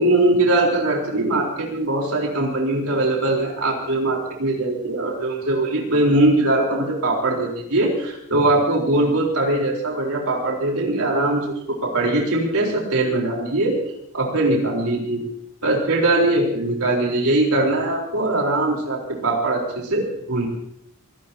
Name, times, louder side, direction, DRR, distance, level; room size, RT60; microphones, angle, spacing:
voice 1, 0.0-11.5 11.8-13.8 14.1-15.2 15.6-20.5, right 2 dB, 85° right, -1 dB, 4.0 m, -21 dB
24.5 x 18.0 x 2.9 m, 0.76 s
head